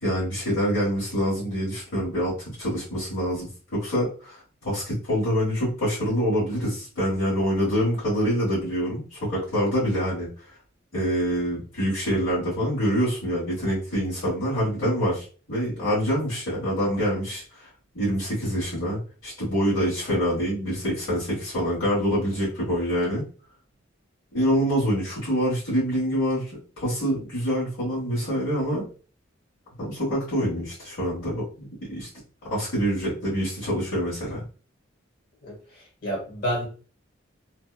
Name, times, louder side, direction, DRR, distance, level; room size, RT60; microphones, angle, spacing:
voice 1, 0.0-4.3 4.6-10.3 10.9-17.4 17.9-23.2 24.3-28.8 29.7-32.1 32.5-34.4, equal, 75° left, -9 dB, 1.3 m, -26 dB
voice 2, 35.4-36.7, equal, 50° left, -2 dB, 1.1 m, -30 dB
2.7 x 2.1 x 2.3 m, 0.38 s
head